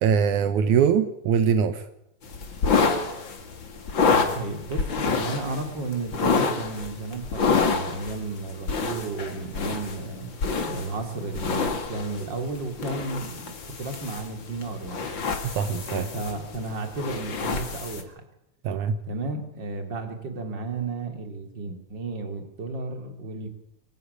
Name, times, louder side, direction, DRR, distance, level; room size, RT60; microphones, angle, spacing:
voice 1, 0.0-1.8 15.4-16.1 18.6-19.0, right 7 dB, 80° right, 11 dB, 2.5 m, -22 dB
sound 1, 2.2-18.0, left 5 dB, 40° left, 2.7 m, -28 dB
voice 2, 3.9-10.3 10.6-15.1 15.9-18.2 19.1-23.5, right 3 dB, 35° right, 6 dB, 3.6 m, -33 dB
25.0 x 15.0 x 9.8 m, 0.83 s
omnidirectional pair, 3.5 m